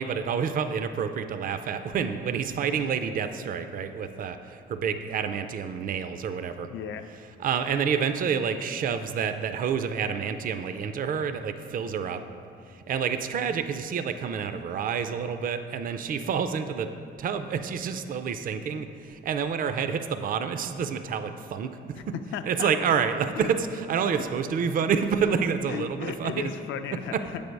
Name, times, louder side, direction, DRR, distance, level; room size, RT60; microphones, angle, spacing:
voice 1, 0.0-6.7 7.4-12.2 12.7-16.9 17.2-21.7 22.4-26.5 27.1-27.2, right 6 dB, 45° right, 9 dB, 0.4 m, -28 dB
voice 2, 6.7-7.1 22.0-22.7 23.3-23.6 25.7-27.4, left 8 dB, 75° left, 9 dB, 0.4 m, -35 dB
7.5 x 3.4 x 5.2 m, 2.4 s
cardioid pair, 90°, 20 cm